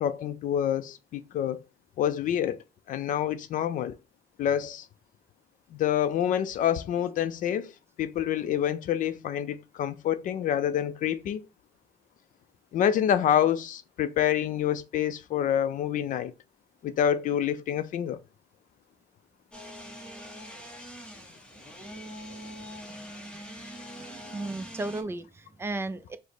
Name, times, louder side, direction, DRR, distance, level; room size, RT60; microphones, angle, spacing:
voice 1, 0.0-1.6 2.0-2.6 2.9-4.0 4.4-4.9 5.7-7.7 8.0-11.4 12.7-16.3 16.8-18.2, left 10 dB, 60° left, 0.4 m, -27 dB
sound 1, 19.5-25.0, equal, 5° left, 0.7 m, -43 dB
voice 2, 22.6-23.6 23.9-26.2, right 2 dB, 15° right, 0.3 m, -36 dB
4.9 x 2.0 x 4.0 m
cardioid pair, 150°, 15 cm